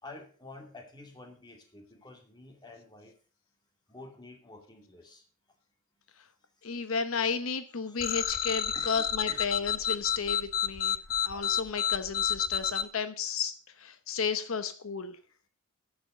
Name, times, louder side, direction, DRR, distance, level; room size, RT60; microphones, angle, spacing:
voice 1, 0.0-3.2 3.9-5.2 7.9-8.0 8.7-9.5, left 2 dB, 20° left, 3 dB, 2.4 m, -49 dB
voice 2, 6.6-11.0 11.2-15.2, left 5 dB, 85° left, 11 dB, 0.9 m, -33 dB
sound 1, 8.0-12.8, left 9 dB, 45° left, 0.7 m, -30 dB
9.7 x 7.1 x 6.7 m, 0.41 s
head